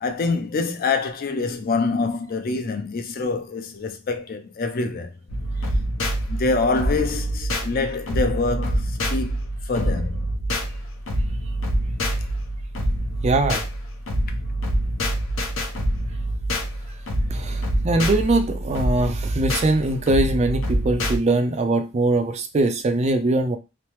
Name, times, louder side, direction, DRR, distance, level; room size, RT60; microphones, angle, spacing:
voice 1, 0.0-5.1 6.3-8.8 9.1-9.4 9.7-10.2 17.5-17.6, left 3 dB, 45° left, 0.4 m, -25 dB
sound 1, 5.3-21.2, equal, 85° left, 0.7 m, -26 dB
voice 2, 13.2-13.6 17.3-23.6, right 2 dB, 35° right, 0.4 m, -22 dB
3.1 x 2.0 x 2.9 m
head